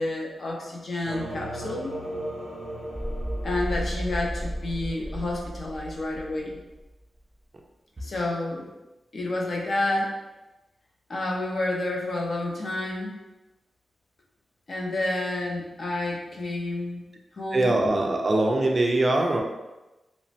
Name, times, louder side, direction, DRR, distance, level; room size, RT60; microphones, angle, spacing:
voice 1, 0.0-2.0 3.4-6.6 8.0-8.7 9.1-10.1 11.1-13.1 14.7-17.8, left 2 dB, 50° left, -1 dB, 0.5 m, -30 dB
sound 1, 1.0-6.7, equal, 70° left, 1.1 m, -33 dB
voice 2, 17.5-19.4, right 2 dB, 35° right, 1 dB, 0.3 m, -22 dB
3.0 x 2.1 x 2.7 m, 1.0 s
wide cardioid pair, 135°, 0 cm